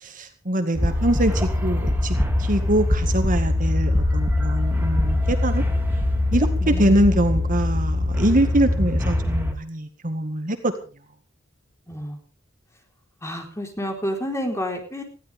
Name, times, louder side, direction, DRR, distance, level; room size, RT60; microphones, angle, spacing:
voice 1, 0.0-5.6 6.3-10.7, right 1 dB, 40° right, 7 dB, 1.9 m, -23 dB
sound 1, 0.7-9.5, left 1 dB, 10° right, 2.5 m, -22 dB
voice 2, 6.6-7.2 8.7-9.0 11.9-12.2 13.2-15.0, equal, 15° left, 3 dB, 4.3 m, -30 dB
20.0 x 16.0 x 3.6 m, 0.36 s
head